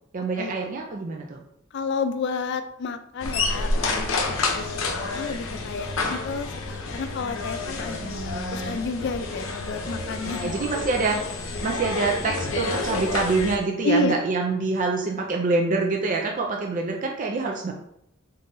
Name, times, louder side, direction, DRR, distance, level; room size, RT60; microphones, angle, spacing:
voice 1, 0.1-1.4 8.0-8.8 10.2-11.2 11.6-17.7, right 3 dB, 40° right, 1 dB, 0.4 m, -26 dB
voice 2, 1.7-10.5 13.8-14.1, left 3 dB, 60° left, 9 dB, 0.4 m, -30 dB
sound 1, 3.2-13.6, left 3 dB, 85° left, 0.7 m, -29 dB
3.9 x 3.7 x 2.6 m, 0.77 s
head